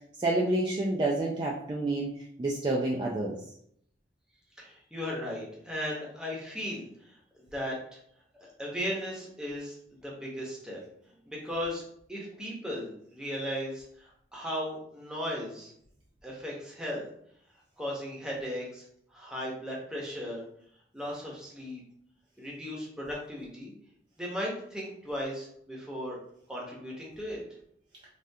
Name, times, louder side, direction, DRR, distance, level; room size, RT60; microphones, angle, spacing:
voice 1, 0.2-2.1 2.4-3.4, right 2 dB, 25° right, -4 dB, 0.3 m, -28 dB
voice 2, 4.6-7.2 7.5-8.0 8.4-9.8 10.0-10.8 11.3-11.8 12.1-15.7 16.2-17.1 17.8-18.8 19.1-20.4 20.9-21.8 22.4-23.7 24.2-26.2 26.5-27.4, equal, 5° right, -4 dB, 0.8 m, -36 dB
3.4 x 2.4 x 2.6 m, 0.69 s
head